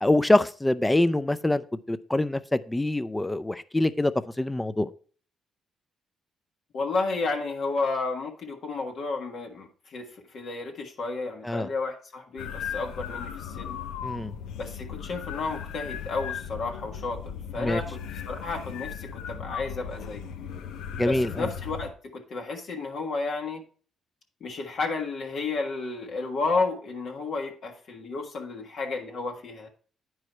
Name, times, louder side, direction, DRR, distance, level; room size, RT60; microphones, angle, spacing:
voice 1, 0.0-4.1 4.4-4.9 11.4-11.7 14.0-14.3 17.6-17.8 21.0-21.5, left 1 dB, 10° left, 0.5 m, -25 dB
voice 2, 6.7-13.8 14.6-20.3 21.0-23.6 24.4-29.7, left 3 dB, 65° left, 1.4 m, -32 dB
sound 1, 12.4-21.9, left 7 dB, 90° left, 0.7 m, -37 dB
9.5 x 4.8 x 4.3 m
cardioid pair, 90°, 0 cm